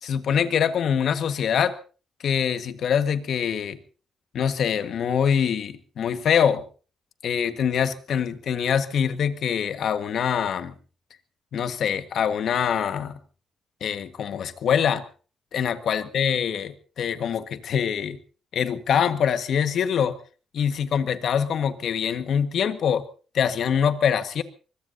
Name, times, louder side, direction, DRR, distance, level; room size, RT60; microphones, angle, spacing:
voice 1, 0.0-1.8 2.2-3.8 4.3-6.6 7.2-10.7 11.5-13.2 13.8-15.0 15.5-18.2 18.5-20.2 20.5-23.0 23.3-24.4, left 8 dB, 65° left, 10 dB, 1.5 m, -24 dB
24.0 x 22.0 x 2.7 m, 0.37 s
cardioid pair, 125°, 0 cm